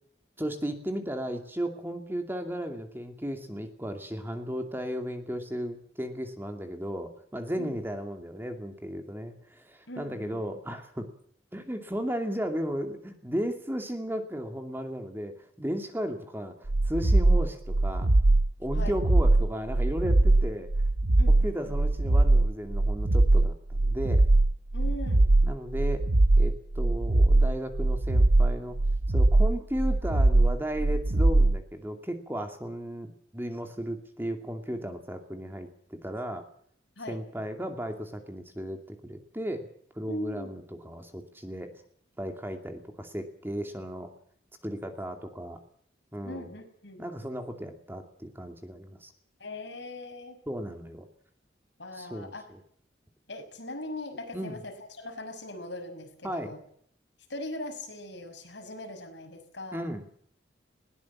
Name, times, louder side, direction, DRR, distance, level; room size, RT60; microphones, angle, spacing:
voice 1, 0.4-11.1 11.5-18.1 18.6-20.7 21.3-24.3 25.4-26.0 26.4-28.8 29.1-36.4 37.1-39.7 39.9-41.7 42.2-44.1 44.6-45.6 46.1-46.5 47.0-49.1 50.5-51.1 51.9-52.6 54.3-54.6 56.2-56.5 59.7-60.1, equal, 10° right, 5 dB, 2.5 m, -35 dB
voice 2, 9.9-10.4 18.7-19.0 21.2-21.7 24.7-25.3 37.0-37.2 40.1-40.5 46.2-47.0 49.4-50.4 51.8-52.5 53.3-56.6 57.3-59.9, left 1 dB, 65° left, 5 dB, 5.9 m, -40 dB
sound 1, 16.7-31.6, right 2 dB, 85° right, 1.0 m, -22 dB
21.5 x 18.5 x 7.4 m, 0.63 s
head